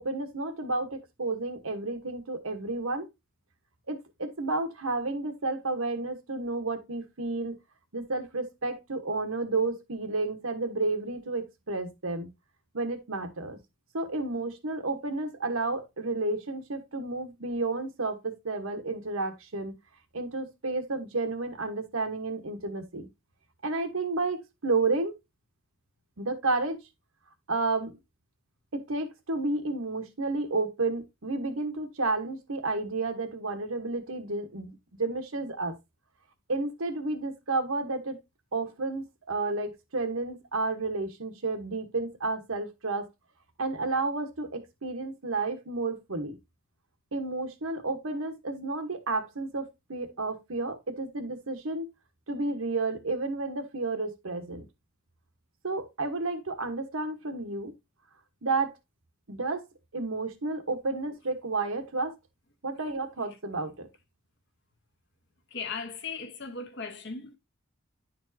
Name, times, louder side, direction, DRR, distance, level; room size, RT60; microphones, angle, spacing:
voice 1, 0.0-3.1 3.9-7.6 7.9-12.3 12.7-13.6 13.9-19.7 20.1-23.1 23.6-25.1 26.2-26.8 27.5-28.0 28.7-35.7 36.5-38.2 38.5-43.1 43.6-46.4 47.1-51.9 52.3-54.7 55.6-57.7 58.4-58.7 59.3-59.6 59.9-62.1 62.6-63.9, right 3 dB, 80° right, 1.2 m, -31 dB
voice 2, 65.5-67.4, left 4 dB, 55° left, 1.1 m, -37 dB
10.0 x 4.4 x 2.7 m
head